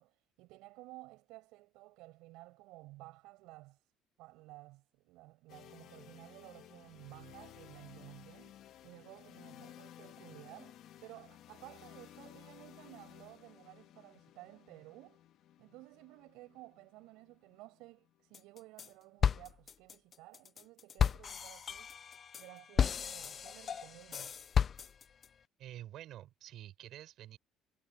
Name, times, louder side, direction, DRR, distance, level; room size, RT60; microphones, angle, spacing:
voice 1, 0.0-3.9 4.2-15.2 15.6-21.9 22.4-24.3, right 20 dB, 85° right, 7.2 m, -55 dB
sound 1, 5.5-19.4, left 12 dB, 55° left, 1.5 m, -57 dB
sound 2, 18.3-18.9 19.2-25.3, left 7 dB, 30° left, 0.5 m, -33 dB
voice 2, 25.6-27.4, right 12 dB, 55° right, 6.9 m, -49 dB
cardioid pair, 160°, 0 cm